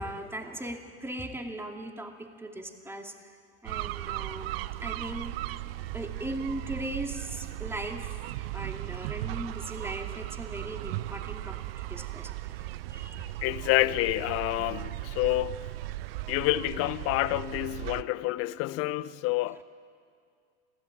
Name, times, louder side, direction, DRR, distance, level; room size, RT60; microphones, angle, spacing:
voice 1, 0.0-3.1 3.6-5.4 5.9-8.2 8.5-12.6 12.9-13.3, right 1 dB, 5° right, 2.4 m, -38 dB
sound 1, 3.7-18.0, right 16 dB, 55° right, 0.7 m, -37 dB
voice 2, 13.4-15.6 16.3-19.6, left 17 dB, 40° left, 0.8 m, -28 dB
27.0 x 16.0 x 8.7 m
figure-of-eight pair, 85°, 34 cm